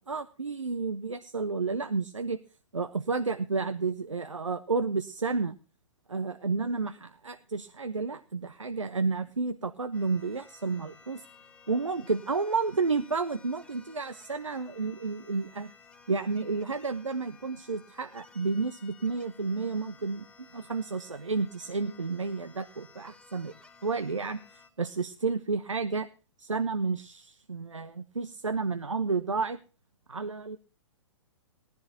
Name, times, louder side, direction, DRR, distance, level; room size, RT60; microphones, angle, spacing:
voice 1, 0.1-2.4 2.7-5.6 6.1-11.2 11.7-15.7 16.1-23.5 23.8-24.4 24.8-26.1 26.4-29.6 30.1-30.6, right 4 dB, 75° right, 10 dB, 1.0 m, -31 dB
sound 1, 9.9-24.7, left 4 dB, 10° left, 2.2 m, -56 dB
19.0 x 14.5 x 2.9 m, 0.35 s
figure-of-eight pair, 115°, 16 cm